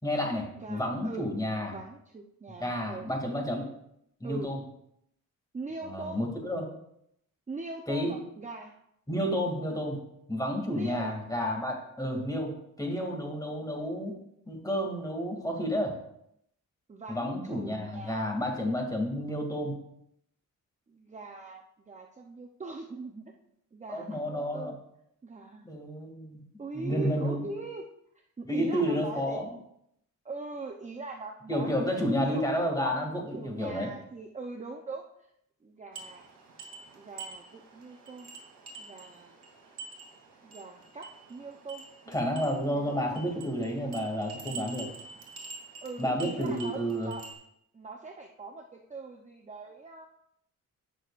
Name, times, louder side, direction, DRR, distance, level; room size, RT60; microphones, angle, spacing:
voice 1, 0.0-1.7 2.6-3.7 4.2-4.6 5.8-6.7 7.9-8.2 9.1-10.0 10.3-12.5 12.8-14.1 14.5-16.0 17.1-19.8 23.9-24.7 25.6-26.4 26.7-27.5 28.4-29.5 31.5-33.9 42.1-44.9 46.0-47.1, equal, 10° left, 1 dB, 2.4 m, -30 dB
voice 2, 0.6-1.3 1.7-3.1 4.2-4.5 5.5-6.3 7.5-8.8 10.7-11.1 16.9-18.3 20.9-23.3 23.7-24.8 25.2-25.6 26.6-27.9 28.4-29.4 30.2-32.6 33.3-35.1 35.6-36.2 36.9-38.3 38.8-39.4 40.4-42.3 42.5-43.1 45.8-47.3 47.7-50.1, right 3 dB, 20° right, 2 dB, 0.7 m, -42 dB
sound 1, 35.9-47.3, right 4 dB, 75° right, 2.8 m, -47 dB
17.0 x 6.2 x 2.5 m, 0.76 s
cardioid pair, 115°, 33 cm